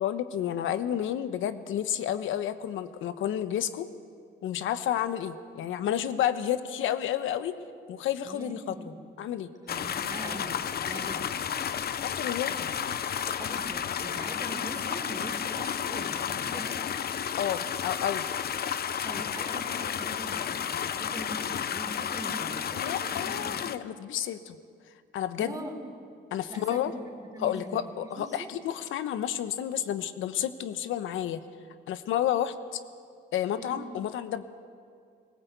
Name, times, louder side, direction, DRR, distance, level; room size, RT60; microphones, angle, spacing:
voice 1, 0.0-3.9 4.4-7.6 7.9-8.7 9.2-9.5 12.0-12.5 17.4-18.3 22.8-24.6 25.1-25.6 26.3-26.9 27.4-31.4 31.9-32.8 33.3-34.4, left 10 dB, 85° left, 12 dB, 1.1 m, -30 dB
voice 2, 8.2-9.1 9.6-11.5 13.4-16.7 19.0-23.7 25.4-25.8 26.5-28.5 33.6-33.8, right 1 dB, 15° right, 3 dB, 3.7 m, -42 dB
sound 1, 9.7-23.8, left 8 dB, 50° left, 0.8 m, -32 dB
21.0 x 18.0 x 8.2 m, 2.2 s
cardioid pair, 90°, 20 cm